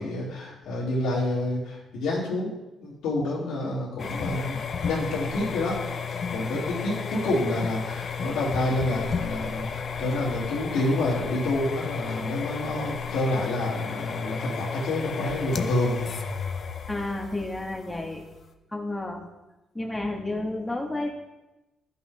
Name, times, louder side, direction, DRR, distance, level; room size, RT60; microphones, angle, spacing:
voice 1, 0.0-2.5 2.8-5.8 6.3-16.0, left 1 dB, 85° left, -6 dB, 1.9 m, -28 dB
sound 1, 4.0-18.5, left 6 dB, 50° left, 0.6 m, -33 dB
voice 2, 16.9-18.2 18.7-19.2 19.7-21.1, left 2 dB, 10° left, 0 dB, 1.3 m, -31 dB
12.0 x 5.6 x 2.2 m, 1.0 s
cardioid pair, 90°, 0 cm